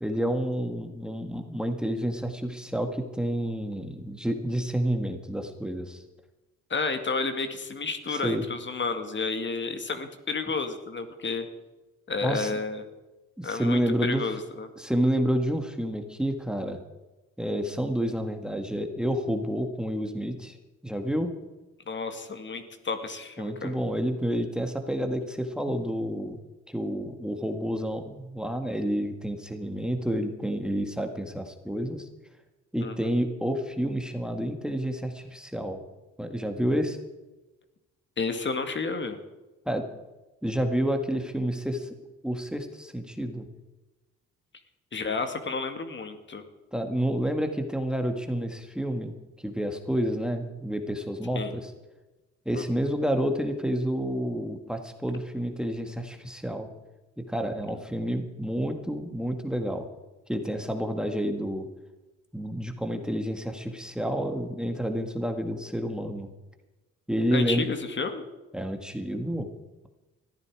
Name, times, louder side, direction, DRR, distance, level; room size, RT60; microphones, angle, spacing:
voice 1, 0.0-6.0 8.1-8.5 12.2-12.5 13.4-14.3 14.8-16.8 17.4-20.6 20.8-21.3 23.4-26.4 26.7-32.1 32.7-35.8 36.2-37.0 39.7-39.8 40.4-41.9 42.2-43.5 46.7-51.7 52.5-56.7 57.2-59.9 60.3-61.7 62.3-66.3 67.1-67.6 68.5-69.5, equal, 5° right, 6 dB, 1.7 m, -29 dB
voice 2, 6.7-11.5 12.1-12.8 13.4-14.7 21.9-23.8 32.8-32.9 38.2-39.2 44.9-46.4 51.3-51.5 52.5-52.6 67.3-68.2, left 4 dB, 40° left, 8 dB, 2.0 m, -31 dB
20.0 x 14.0 x 4.8 m, 1.1 s
cardioid pair, 90°, 30 cm